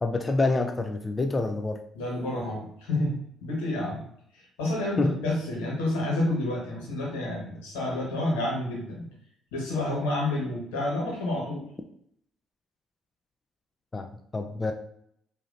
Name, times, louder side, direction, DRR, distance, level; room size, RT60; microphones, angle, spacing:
voice 1, 0.0-1.8 5.0-5.1 13.9-14.7, left 3 dB, 30° left, 5 dB, 0.4 m, -27 dB
voice 2, 1.9-4.0 4.3-9.1 9.5-11.7, left 1 dB, 85° left, -2 dB, 1.3 m, -29 dB
4.9 x 2.8 x 2.6 m, 0.70 s
hypercardioid pair, 55°, 0 cm